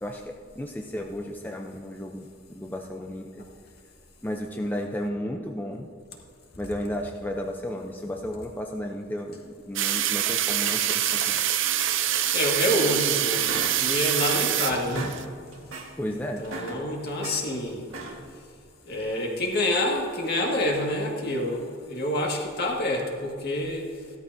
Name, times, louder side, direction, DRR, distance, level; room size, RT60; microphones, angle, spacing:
voice 1, 0.0-3.4 4.2-5.9 6.6-11.4 16.0-16.4, equal, 10° left, 2 dB, 0.5 m, -33 dB
sound 1, 9.8-15.2, right 11 dB, 65° right, 0.6 m, -25 dB
voice 2, 12.3-15.1 16.1-17.8 18.9-23.9, left 1 dB, 50° left, -1 dB, 1.9 m, -27 dB
sound 2, 12.7-13.1 13.4-14.5 14.8-15.2 15.5-15.9 16.3-17.4 17.8-18.3, right 2 dB, 85° right, 1.7 m, -37 dB
14.5 x 13.0 x 2.7 m, 2.3 s
head